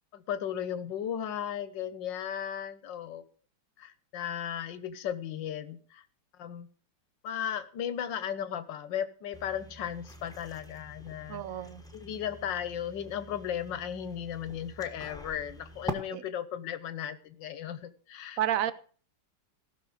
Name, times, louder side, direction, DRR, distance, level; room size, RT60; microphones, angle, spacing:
voice 1, 0.1-3.2 3.8-6.0 6.4-6.7 7.2-11.4 11.9-18.4, left 9 dB, 80° left, 14 dB, 1.7 m, -36 dB
sound 1, 9.3-15.9, equal, 5° left, 1.0 m, -44 dB
voice 2, 11.3-11.8 16.1-16.2 18.4-18.7, right 11 dB, 60° right, 15 dB, 1.0 m, -30 dB
16.5 x 6.0 x 6.5 m, 0.42 s
omnidirectional pair, 2.0 m